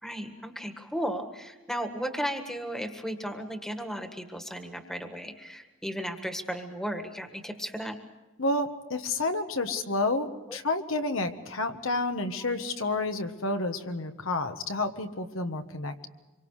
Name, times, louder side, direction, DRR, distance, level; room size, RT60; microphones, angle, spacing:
voice 1, 0.0-8.0 9.7-9.8 10.5-10.6 12.4-12.5, equal, ahead, 6 dB, 1.6 m, -35 dB
voice 2, 8.4-16.1, left 2 dB, 80° left, 6 dB, 1.5 m, -30 dB
26.0 x 24.0 x 4.9 m, 1.1 s
head